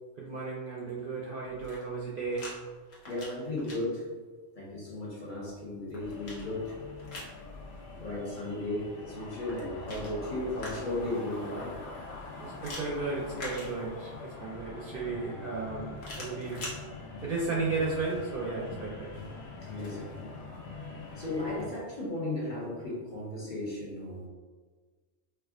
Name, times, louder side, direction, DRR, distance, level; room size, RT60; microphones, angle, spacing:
voice 1, 0.2-2.5 12.4-16.6 17.2-19.1, right 3 dB, 60° right, -4 dB, 0.6 m, -34 dB
sound 1, 1.5-2.5 2.9-3.8 5.5-7.4 9.3-11.1 12.6-14.2 16.0-16.8, left 1 dB, 90° left, 1.3 m, -44 dB
voice 2, 3.1-4.0 4.6-6.8 7.9-11.7 19.6-20.1 21.2-24.3, left 1 dB, 45° left, -6 dB, 0.9 m, -35 dB
sound 2, 6.0-21.7, left 3 dB, 65° left, 1.1 m, -44 dB
4.5 x 2.4 x 2.4 m, 1.4 s
omnidirectional pair, 1.3 m